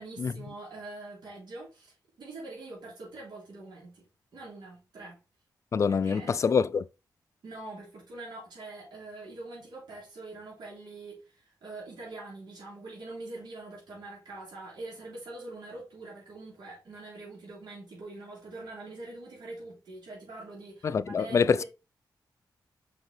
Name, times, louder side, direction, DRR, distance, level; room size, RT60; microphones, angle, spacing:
voice 1, 0.0-4.0 4.3-5.2 5.9-6.4 7.4-21.7, right 2 dB, 75° right, 3.4 m, -44 dB
voice 2, 5.7-6.8 20.8-21.6, left 6 dB, 40° left, 0.4 m, -25 dB
6.0 x 5.0 x 3.3 m
wide cardioid pair, 130°, 7 cm